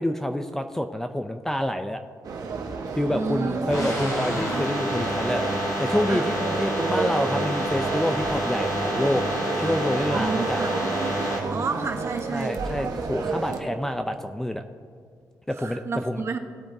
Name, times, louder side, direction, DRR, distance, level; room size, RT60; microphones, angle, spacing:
voice 1, 0.0-2.0 2.9-9.2 9.6-10.6 12.3-14.6 15.5-16.2, left 1 dB, 5° left, 7 dB, 0.4 m, -27 dB
sound 1, 2.2-13.6, right 4 dB, 60° right, 1.2 m, -31 dB
voice 2, 3.1-3.9 6.1-6.5 10.1-10.8 11.5-12.6 15.6-16.4, right 4 dB, 40° right, 5 dB, 1.1 m, -30 dB
sound 2, 3.7-11.4, equal, 55° left, 2.8 m, -28 dB
Trumpet, 5.3-12.6, left 1 dB, 85° left, 3.0 m, -46 dB
19.0 x 8.6 x 2.7 m, 2.2 s
cardioid pair, 125°, 7 cm